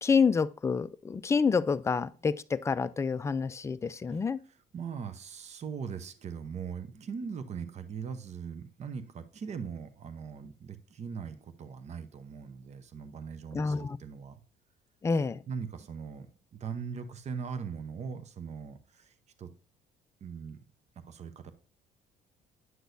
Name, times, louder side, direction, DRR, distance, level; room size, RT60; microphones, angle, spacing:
voice 1, 0.0-4.4 13.5-14.0 15.0-15.4, left 5 dB, 15° left, 0.3 m, -28 dB
voice 2, 4.7-14.4 15.5-16.3 16.5-19.5 20.2-20.6 21.1-21.5, right 6 dB, 40° right, 0.8 m, -40 dB
9.3 x 6.1 x 2.6 m
cardioid pair, 110°, 17 cm